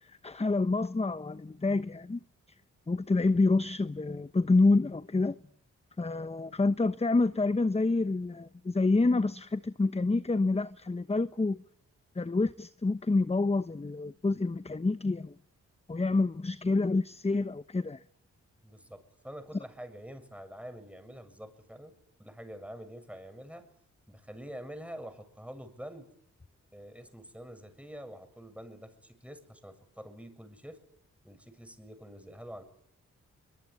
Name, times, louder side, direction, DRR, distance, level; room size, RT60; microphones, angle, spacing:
voice 1, 0.0-2.2 2.9-5.4 6.0-11.6 12.2-15.3 15.9-18.0, left 3 dB, 20° left, 1.0 m, -27 dB
voice 2, 18.6-23.7 24.1-26.1 26.7-30.8 31.2-32.6, equal, 5° right, 6.9 m, -46 dB
23.5 x 22.5 x 9.7 m
supercardioid pair, 45°, 32 cm